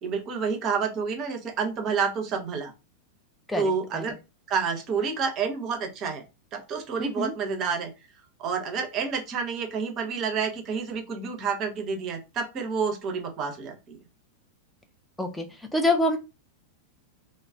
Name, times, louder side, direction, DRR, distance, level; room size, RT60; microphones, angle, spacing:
voice 1, 0.0-2.7 3.6-4.1 4.5-6.2 6.5-7.9 8.4-14.0, right 5 dB, 35° right, 5 dB, 0.6 m, -29 dB
voice 2, 3.5-4.1 7.0-7.3 15.2-16.2, left 1 dB, 5° left, 4 dB, 0.5 m, -27 dB
2.3 x 2.1 x 3.3 m, 0.27 s
figure-of-eight pair, 90°, 0 cm